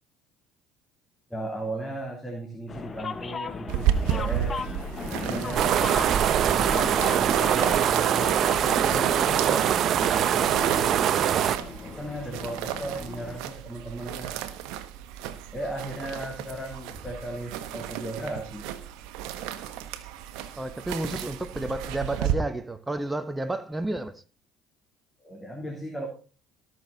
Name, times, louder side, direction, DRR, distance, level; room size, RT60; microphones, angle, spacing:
voice 1, 1.3-4.6 5.1-5.7 6.1-9.7 10.0-10.9 11.6-14.3 15.5-18.7 25.2-26.1, right 1 dB, 15° left, 3.2 m, -36 dB
sound 1, 2.7-13.4, left 5 dB, 35° left, 0.9 m, -37 dB
sound 2, 3.7-22.3, right 11 dB, 70° right, 1.2 m, -34 dB
sound 3, 5.6-11.6, right 10 dB, 55° right, 0.7 m, -23 dB
voice 2, 20.5-24.2, right 2 dB, 15° right, 1.1 m, -31 dB
19.0 x 6.4 x 4.1 m
hypercardioid pair, 60°, 0 cm